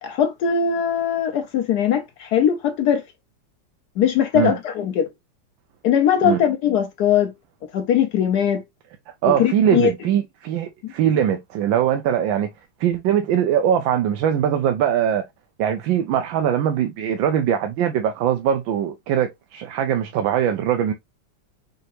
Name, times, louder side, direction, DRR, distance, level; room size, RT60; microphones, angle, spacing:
voice 1, 0.0-3.0 4.0-5.1 5.8-7.3 7.7-8.6 9.2-9.9 10.8-10.9, left 8 dB, 70° left, 1.0 m, -20 dB
voice 2, 9.2-12.5 12.8-15.2 15.6-20.9, right 9 dB, 80° right, 1.4 m, -21 dB
5.4 x 2.8 x 2.9 m
omnidirectional pair, 2.1 m